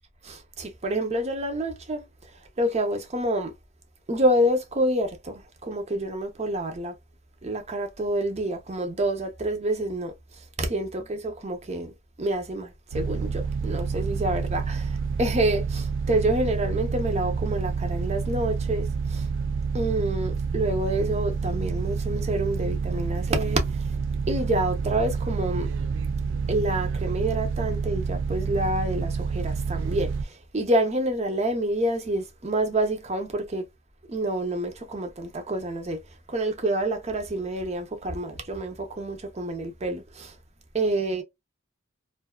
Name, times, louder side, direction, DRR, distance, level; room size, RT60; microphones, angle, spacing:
voice 1, 0.2-2.0 2.6-3.5 4.1-6.9 7.4-10.1 10.6-11.9 12.2-19.3 19.7-23.7 24.3-25.7 26.5-33.6 34.1-36.0 36.3-40.3 40.7-41.2, right 1 dB, 35° right, 0.7 m, -27 dB
sound 1, 12.9-30.2, right 5 dB, 60° right, 0.3 m, -28 dB
2.6 x 2.3 x 2.2 m
head